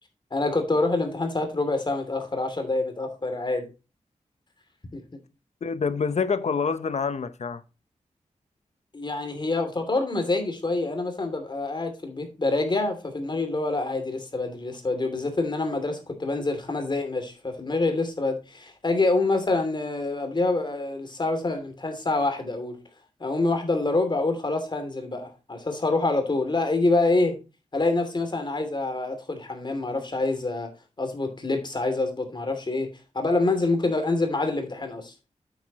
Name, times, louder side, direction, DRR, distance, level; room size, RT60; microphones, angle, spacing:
voice 1, 0.3-3.6 4.9-5.0 8.9-22.8 23.2-27.4 27.7-30.7 31.0-35.1, left 2 dB, 35° left, 2.8 m, -26 dB
voice 2, 5.6-7.6, left 5 dB, 60° left, 0.9 m, -26 dB
8.9 x 8.8 x 3.0 m
wide cardioid pair, 100°, 13 cm